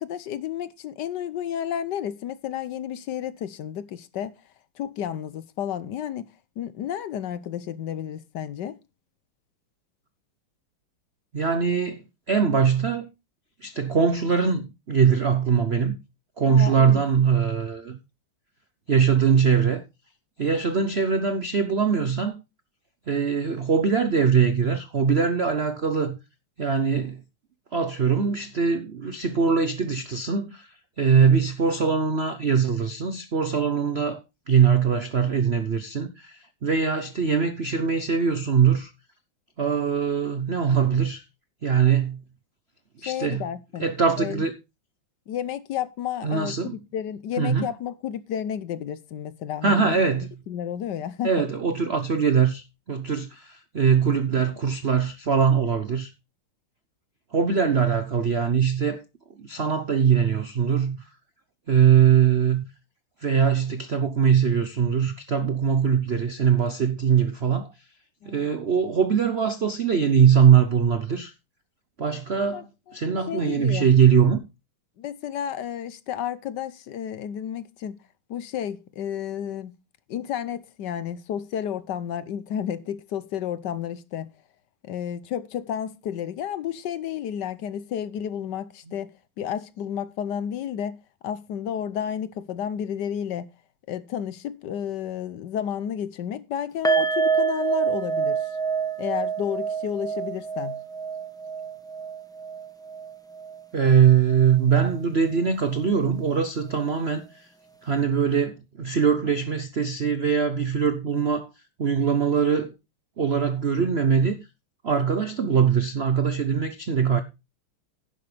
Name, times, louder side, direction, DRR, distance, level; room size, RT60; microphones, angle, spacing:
voice 1, 0.0-4.3 4.8-6.3 6.6-8.8 16.5-17.0 43.1-43.9 44.2-44.4 45.3-46.5 46.9-50.0 50.5-51.3 68.2-68.5 72.5-73.0 73.3-73.9 75.0-78.0 78.3-79.7 80.1-84.3 84.8-89.1 89.4-91.0 91.2-93.5 93.9-98.5 99.0-100.8, left 9 dB, 65° left, 1.1 m, -31 dB
voice 2, 11.3-13.1 13.6-16.0 16.4-18.0 18.9-19.8 20.4-22.3 23.1-26.2 26.6-27.2 27.7-30.7 31.0-34.2 34.5-38.9 39.6-41.2 41.6-42.2 43.0-43.5 43.8-44.5 46.2-46.8 47.4-47.7 49.6-50.3 51.2-56.1 57.3-59.0 59.4-61.0 61.7-62.7 63.2-67.7 68.2-71.3 72.0-72.6 72.9-74.4 103.7-107.2 107.8-111.5 111.8-112.7 113.2-114.4 114.8-117.2, right 7 dB, 70° right, 0.5 m, -22 dB
sound 1, 96.8-104.0 104.3-104.5 104.9-105.0, right 6 dB, 5° left, 0.5 m, -27 dB
11.0 x 11.0 x 3.3 m
omnidirectional pair, 2.4 m